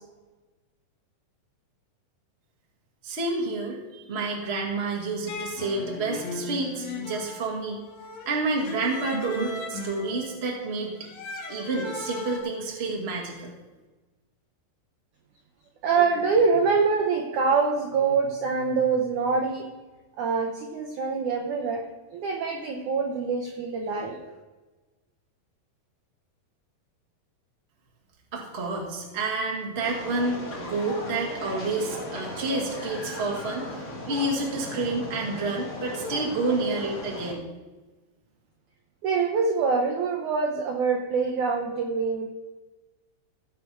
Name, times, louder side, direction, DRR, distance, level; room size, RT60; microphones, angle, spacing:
voice 1, 3.0-7.8 8.2-11.0 11.5-13.5 28.3-33.8 34.1-37.4, right 3 dB, 35° right, -1 dB, 1.0 m, -29 dB
sound 1, 5.3-12.4, left 3 dB, 90° left, 3.5 m, -38 dB
voice 2, 15.8-19.7 20.2-21.8 22.1-24.3 39.0-42.3, right 5 dB, 75° right, 1 dB, 1.8 m, -25 dB
sound 2, 29.8-37.3, left 1 dB, 45° left, 0.9 m, -37 dB
17.0 x 5.8 x 4.8 m, 1.2 s
omnidirectional pair, 4.8 m